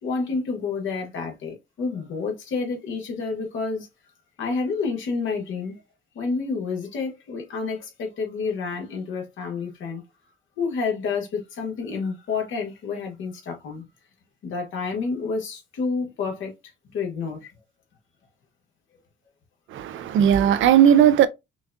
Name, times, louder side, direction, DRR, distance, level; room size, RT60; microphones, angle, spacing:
voice 1, 0.0-3.9 4.4-5.7 6.1-10.0 10.6-13.8 14.4-16.5 16.9-17.5, left 4 dB, 80° left, 1.7 m, -29 dB
voice 2, 19.7-21.3, right 9 dB, 75° right, 0.6 m, -17 dB
5.9 x 2.4 x 2.7 m
cardioid pair, 90°, 20 cm